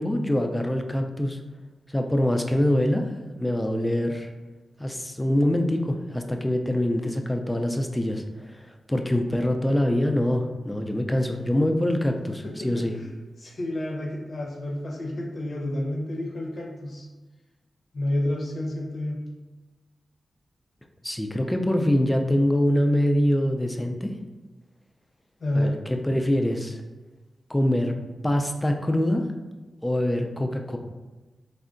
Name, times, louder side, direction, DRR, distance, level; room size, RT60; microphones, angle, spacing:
voice 1, 0.0-1.4 1.9-4.3 4.8-12.9 21.0-24.1 25.5-26.8 27.5-27.9 28.2-29.2 29.8-30.8, left 1 dB, 15° left, 4 dB, 0.3 m, -24 dB
voice 2, 12.4-13.1 13.4-17.1 17.9-19.2 25.4-25.7, left 1 dB, 65° left, -2 dB, 0.7 m, -29 dB
3.5 x 2.1 x 2.5 m, 1.2 s
cardioid pair, 50°, 0 cm